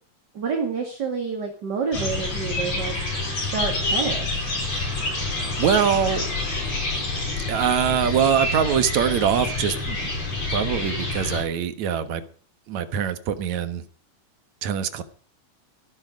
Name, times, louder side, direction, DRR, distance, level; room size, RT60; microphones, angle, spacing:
voice 1, 0.3-3.0 3.3-4.3, right 5 dB, 35° right, 2.6 m, -28 dB
sound 1, 1.9-11.4, left 2 dB, 60° left, 7.1 m, -27 dB
voice 2, 5.6-6.3 7.5-10.1 10.5-12.2 12.7-13.8 14.6-15.0, right 8 dB, 70° right, 2.7 m, -23 dB
15.0 x 12.5 x 5.3 m
omnidirectional pair, 3.4 m